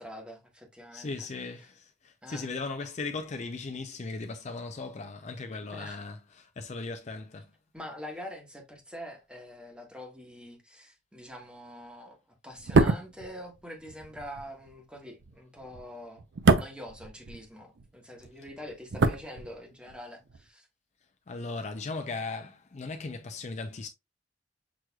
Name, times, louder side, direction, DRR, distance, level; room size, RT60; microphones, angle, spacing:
voice 1, 0.0-1.3 2.2-2.5 5.7-6.0 7.7-12.2 12.4-16.3 16.6-20.7, equal, 5° right, 1.1 m, -45 dB
voice 2, 0.9-7.5 21.3-23.9, left 3 dB, 40° left, 0.4 m, -37 dB
sound 1, 12.6-17.9 18.1-20.0 20.2-20.4, right 3 dB, 80° right, 0.5 m, -27 dB
6.1 x 3.1 x 2.3 m
head